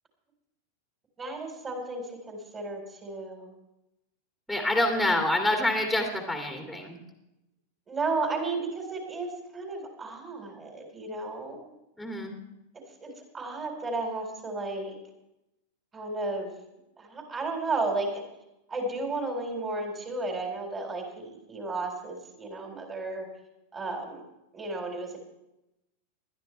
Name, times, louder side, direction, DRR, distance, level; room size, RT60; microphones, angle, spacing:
voice 1, 1.2-3.5 7.9-11.6 13.0-15.0 15.9-16.5 17.0-18.2 18.7-23.3 23.7-24.2 24.5-25.2, right 3 dB, 20° right, 2 dB, 4.2 m, -33 dB
voice 2, 4.5-7.0 12.0-12.4, left 1 dB, ahead, 2 dB, 2.5 m, -27 dB
20.5 x 12.5 x 3.3 m, 0.88 s
figure-of-eight pair, 90°, 0 cm